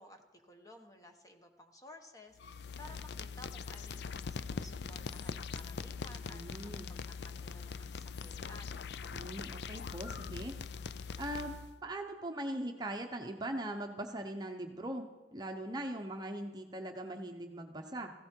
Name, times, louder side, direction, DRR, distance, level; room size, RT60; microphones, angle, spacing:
voice 1, 0.0-2.4 2.8-8.8, left 1 dB, 20° left, 4 dB, 1.2 m, -55 dB
sound 1, 2.4-11.8, left 5 dB, 70° left, 0.4 m, -42 dB
voice 2, 6.3-6.9 9.1-10.5 11.2-11.5 11.8-18.1, right 1 dB, 25° right, 4 dB, 0.8 m, -40 dB
15.5 x 15.5 x 4.5 m, 1.3 s
head